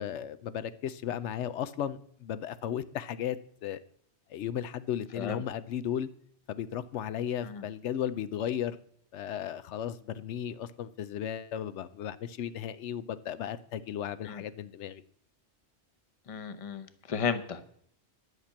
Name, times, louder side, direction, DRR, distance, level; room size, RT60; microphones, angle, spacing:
voice 1, 0.0-3.8 4.3-6.1 6.5-8.8 9.1-15.0, left 10 dB, 85° left, 14 dB, 0.9 m, -35 dB
voice 2, 16.3-17.6, left 6 dB, 35° left, 10 dB, 0.8 m, -34 dB
11.0 x 5.8 x 8.6 m, 0.66 s
omnidirectional pair, 1.1 m